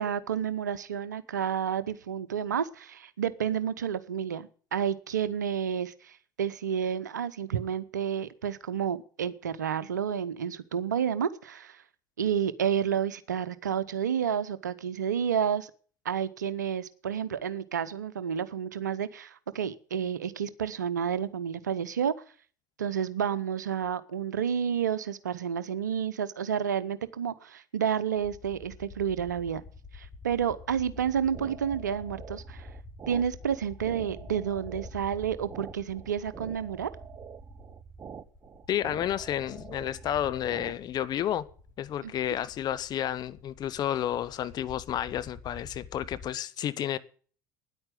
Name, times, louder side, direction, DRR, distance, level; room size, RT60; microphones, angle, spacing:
voice 1, 0.0-11.8 12.2-15.7 16.0-22.1 22.8-29.6 29.9-32.7 33.1-36.9 42.0-42.1, right 8 dB, 85° right, 0.8 m, -30 dB
sound 1, 28.2-46.3, left 4 dB, 25° left, 6.1 m, -48 dB
sound 2, 31.0-40.7, right 7 dB, 35° right, 0.9 m, -46 dB
voice 2, 38.7-41.5 41.8-47.0, left 11 dB, 45° left, 0.9 m, -31 dB
10.0 x 8.8 x 9.2 m
figure-of-eight pair, 65°, 9 cm